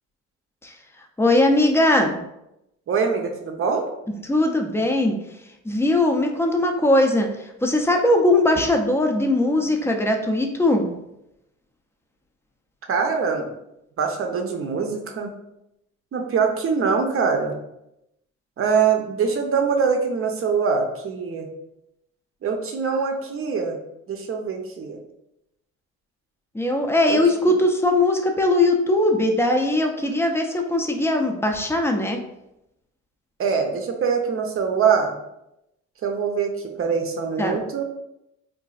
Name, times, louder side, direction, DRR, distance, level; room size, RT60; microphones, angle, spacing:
voice 1, 1.2-2.2 4.2-5.2 5.6-11.0 26.5-32.2 37.4-37.6, left 1 dB, 10° left, 3 dB, 0.4 m, -20 dB
voice 2, 2.9-3.9 12.9-13.5 14.0-15.3 16.1-17.5 18.6-21.5 22.4-23.8 24.1-25.0 27.1-27.2 33.4-35.2 36.0-36.5 36.8-37.8, right 5 dB, 45° right, 3 dB, 0.6 m, -23 dB
3.9 x 2.5 x 2.4 m, 0.85 s
cardioid pair, 90°, 30 cm